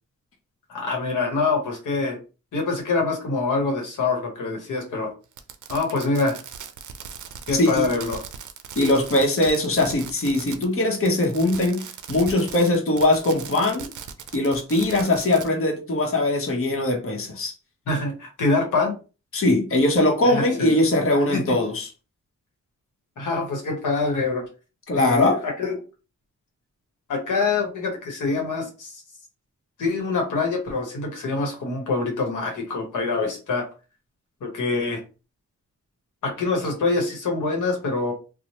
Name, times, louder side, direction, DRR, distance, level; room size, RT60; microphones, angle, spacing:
voice 1, 0.7-2.2 2.5-5.1 5.7-6.4 7.5-8.2 17.9-18.9 20.2-20.7 21.3-21.4 23.2-24.4 24.9-25.7 27.1-29.0 29.8-33.6 34.4-35.0 36.2-38.1, left 3 dB, 90° left, 2 dB, 0.9 m, -25 dB
Fireworks, 5.3-10.7 11.0-15.5, right 8 dB, 80° right, 0.5 m, -39 dB
voice 2, 7.5-7.9 8.8-13.9 14.3-17.5 19.3-21.9 24.9-25.4, left 2 dB, 45° left, 2 dB, 0.9 m, -21 dB
2.9 x 2.0 x 2.8 m, 0.32 s
cardioid pair, 70°, 30 cm